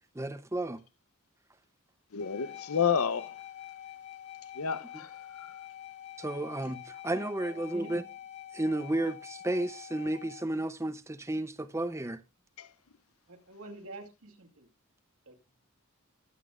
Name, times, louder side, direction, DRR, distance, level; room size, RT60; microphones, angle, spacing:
voice 1, 0.2-0.8 6.2-8.0 8.5-12.2, right 1 dB, 15° right, 0.6 m, -32 dB
voice 2, 2.1-3.4 4.5-5.5 12.6-12.7, left 7 dB, 80° left, 0.8 m, -31 dB
sound 1, 2.2-10.5, left 11 dB, 30° left, 1.1 m, -46 dB
voice 3, 7.4-8.0 13.3-14.7 15.3-15.6, right 2 dB, 75° right, 2.4 m, -48 dB
21.0 x 8.4 x 2.4 m
head